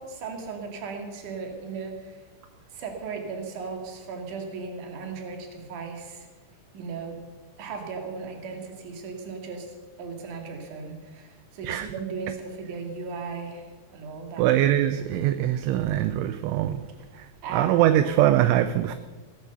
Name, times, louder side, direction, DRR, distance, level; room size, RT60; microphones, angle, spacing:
voice 1, 0.0-2.2 2.7-6.3 6.7-7.2 7.6-14.4 17.4-18.2, right 5 dB, 50° right, 3 dB, 3.0 m, -36 dB
voice 2, 14.4-16.8 17.5-19.0, right 12 dB, 80° right, 11 dB, 2.8 m, -22 dB
16.5 x 11.5 x 6.8 m, 1.3 s
omnidirectional pair, 5.8 m